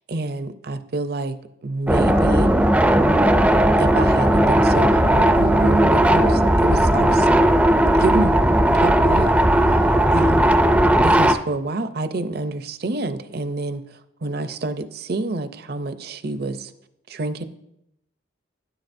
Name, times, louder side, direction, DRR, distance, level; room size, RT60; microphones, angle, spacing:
voice 1, 0.1-1.4 1.6-2.5 3.8-7.3 8.0-8.3 8.7-9.3 10.1-10.4 11.0-13.8 14.2-16.7 17.1-17.4, right 2 dB, 55° right, 11 dB, 0.6 m, -27 dB
sound 1, 1.9-11.3, right 1 dB, 5° right, 0.4 m, -16 dB
12.0 x 9.9 x 2.6 m, 0.80 s
head